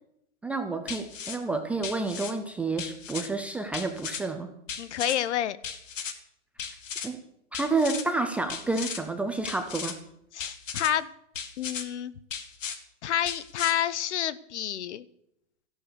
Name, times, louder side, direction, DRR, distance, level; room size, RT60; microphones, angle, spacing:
voice 1, 0.4-4.5 7.0-7.2 7.5-10.0, right 3 dB, 5° right, 5 dB, 0.4 m, -29 dB
sound 1, 0.9-1.4 1.8-2.3 2.8-3.3 3.7-4.2 4.7-5.2 5.6-6.1 6.6-7.1 7.5-8.0 8.5-9.0 9.4-10.0 10.4-10.9 11.4-11.8 12.3-12.8 13.3-13.7, left 7 dB, 85° left, 2.2 m, -36 dB
voice 2, 4.8-5.6 10.3-11.1 11.6-12.1 13.0-15.0, left 11 dB, 65° left, 17 dB, 1.0 m, -29 dB
14.5 x 11.5 x 6.7 m, 0.76 s
hypercardioid pair, 150°, 38 cm